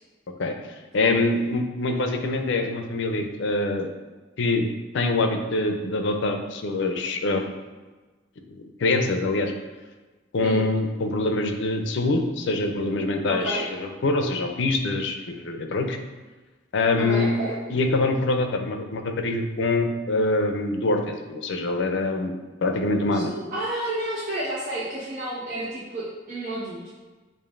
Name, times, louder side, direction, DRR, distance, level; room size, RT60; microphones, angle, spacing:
voice 1, 0.9-3.9 4.4-4.7 4.9-7.4 8.8-9.5 10.3-16.0 16.7-17.3 17.7-22.3 22.6-23.3, left 2 dB, 65° left, 5 dB, 0.5 m, -24 dB
voice 2, 13.3-13.7 17.0-17.5 23.1-26.8, right 1 dB, 45° right, -10 dB, 1.0 m, -30 dB
7.0 x 2.5 x 2.5 m, 1.3 s
head